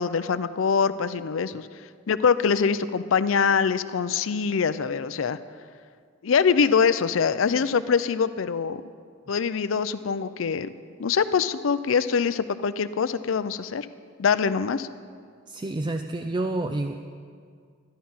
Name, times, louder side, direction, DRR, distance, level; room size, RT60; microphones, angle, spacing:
voice 1, 0.0-1.7 2.1-5.4 6.2-8.8 9.3-10.7 11.0-13.9 14.2-14.9, left 6 dB, 80° left, 13 dB, 0.5 m, -24 dB
voice 2, 15.5-17.0, right 2 dB, 25° right, 6 dB, 0.4 m, -29 dB
13.5 x 11.5 x 5.6 m, 2.1 s
head